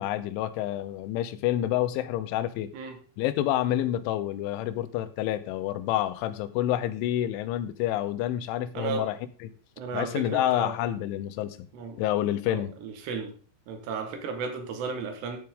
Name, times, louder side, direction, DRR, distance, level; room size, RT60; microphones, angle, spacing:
voice 1, 0.0-2.7 3.2-9.2 9.4-9.5 9.9-11.6 12.0-12.7, left 12 dB, 90° left, 3.2 m, -28 dB
voice 2, 8.8-9.1 9.8-10.7 11.7-12.0 12.5-13.3 13.7-15.4, right 5 dB, 70° right, 3.4 m, -34 dB
13.5 x 7.6 x 3.7 m
omnidirectional pair, 5.4 m